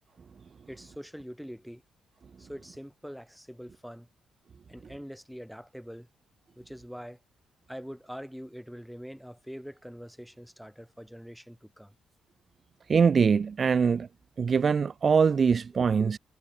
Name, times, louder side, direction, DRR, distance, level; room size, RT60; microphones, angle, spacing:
voice 1, 0.7-1.8 2.4-4.1 4.7-6.1 6.6-7.2 7.7-12.0 16.0-16.1, equal, ahead, 2.5 m, -44 dB
voice 2, 12.9-14.1 14.4-16.2, right 6 dB, 40° right, 0.3 m, -23 dB
cardioid pair, 90°, 0 cm